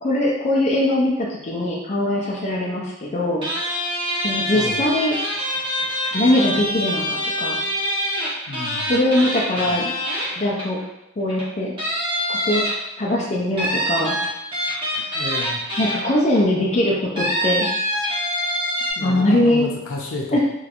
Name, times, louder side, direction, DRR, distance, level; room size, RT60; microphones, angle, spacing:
voice 1, 0.0-3.5 4.2-5.2 6.1-7.6 8.9-9.9 10.4-10.8 11.2-11.7 12.4-12.6 13.0-14.1 15.8-17.7 19.0-19.7 20.3-20.4, left 1 dB, 35° left, -4 dB, 0.5 m, -21 dB
sound 1, 3.4-10.8 11.3-11.4 11.8-13.1 13.6-16.4 17.2-18.9, equal, 25° right, 1.1 m, -25 dB
voice 2, 4.5-4.9 8.5-8.9 9.6-9.8 15.1-15.6 19.0-20.4, left 2 dB, 85° left, 0 dB, 0.6 m, -31 dB
3.1 x 3.1 x 2.5 m, 0.85 s
head